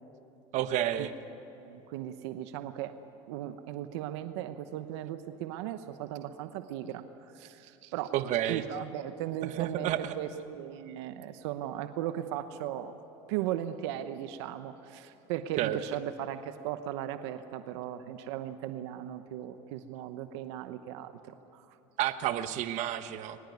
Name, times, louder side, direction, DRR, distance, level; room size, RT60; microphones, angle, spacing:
voice 1, 0.5-1.1 8.1-8.6 9.4-10.2 15.6-15.8 22.0-23.4, right 12 dB, 55° right, 11 dB, 1.2 m, -30 dB
voice 2, 1.6-2.9 3.3-7.0 7.3-8.1 8.5-12.9 13.3-21.6, right 12 dB, 80° right, 10 dB, 1.0 m, -37 dB
23.0 x 20.0 x 9.6 m, 3.0 s
supercardioid pair, 110°, 14 cm